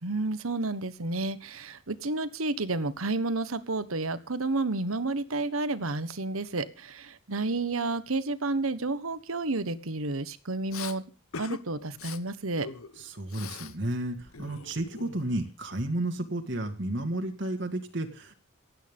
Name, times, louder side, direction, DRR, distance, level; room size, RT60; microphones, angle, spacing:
voice 1, 0.0-11.0 11.4-12.7, right 2 dB, 85° right, 14 dB, 1.4 m, -31 dB
Respiratory sounds, 10.7-11.0 11.3-11.6 11.9-12.2 12.6-13.8 14.0-15.5, left 6 dB, 90° left, 1.2 m, -42 dB
voice 2, 13.0-18.3, right 1 dB, 55° right, 4 dB, 2.0 m, -32 dB
28.0 x 9.3 x 3.6 m, 0.33 s
head